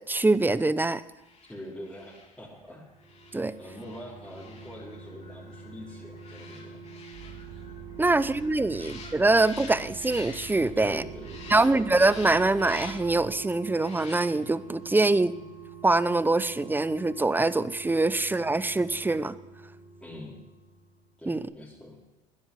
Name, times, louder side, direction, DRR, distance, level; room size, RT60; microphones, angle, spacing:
voice 1, 0.1-1.0 3.3-3.5 8.0-11.0 11.5-15.3 15.8-19.3 21.3-21.4, right 2 dB, 10° right, 16 dB, 0.7 m, -24 dB
sound 1, 1.1-10.9 11.2-13.2 13.7-14.6 14.9-15.1, left 4 dB, 40° left, 3.0 m, -48 dB
voice 2, 1.5-2.9 3.6-7.0 8.0-8.2 8.8-8.9 10.7-11.7 20.0-20.4 21.2-22.0, equal, 5° left, -6 dB, 3.9 m, -44 dB
sound 2, 2.6-21.1 21.4-21.5, right 6 dB, 50° right, 3.0 m, -47 dB
sound 3, 7.1-13.2, right 6 dB, 75° right, 4.0 m, -46 dB
14.0 x 10.0 x 8.2 m, 0.99 s
hypercardioid pair, 75°, 18 cm